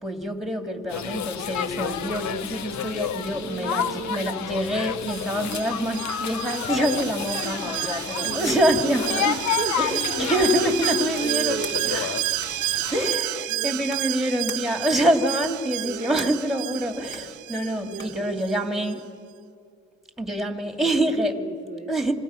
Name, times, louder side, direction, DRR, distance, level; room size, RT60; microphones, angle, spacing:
voice 1, 0.0-9.3 9.8-12.1 12.9-19.0 20.2-21.3 21.9-22.1, right 1 dB, ahead, 5 dB, 2.5 m, -26 dB
voice 2, 0.8-1.2 3.2-4.5 7.6-7.9 8.2-10.0 11.1-12.2 13.5-13.9 15.8-16.4 17.9-19.0 20.7-22.1, right 5 dB, 25° right, 3 dB, 1.0 m, -36 dB
sound 1, 0.9-13.1, left 9 dB, 65° left, 0.9 m, -30 dB
Alarm, 5.1-18.6 18.9-19.0, right 17 dB, 75° right, 0.5 m, -31 dB
sound 2, 7.6-18.3, left 2 dB, 35° left, 2.2 m, -47 dB
27.0 x 26.0 x 5.9 m, 2.4 s
cardioid pair, 90°, 30 cm